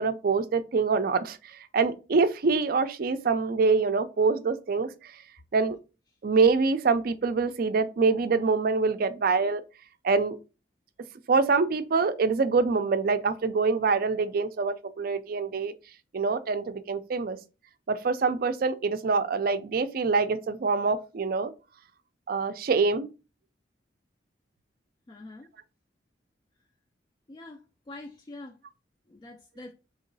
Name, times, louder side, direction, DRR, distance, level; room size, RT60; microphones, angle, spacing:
voice 1, 0.0-5.1 5.5-5.8 6.2-9.6 10.0-10.4 11.3-15.7 16.1-17.4 17.9-21.5 22.3-23.1, right 4 dB, 55° right, 0.4 m, -25 dB
voice 2, 25.1-25.5 27.3-28.6 29.1-29.7, left 2 dB, 25° left, 0.3 m, -45 dB
3.8 x 2.9 x 3.9 m
head